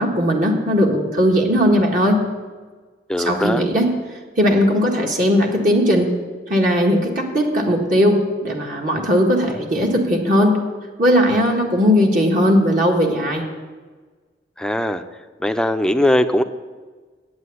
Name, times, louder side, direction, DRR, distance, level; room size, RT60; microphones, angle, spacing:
voice 1, 0.0-2.2 3.2-3.9 4.4-6.1 6.5-10.6 11.0-13.4, equal, 50° right, 0 dB, 1.6 m, -18 dB
voice 2, 3.1-3.6 14.6-15.0 15.4-16.4, left 1 dB, 5° left, 8 dB, 0.5 m, -19 dB
9.6 x 8.6 x 8.3 m, 1.4 s
head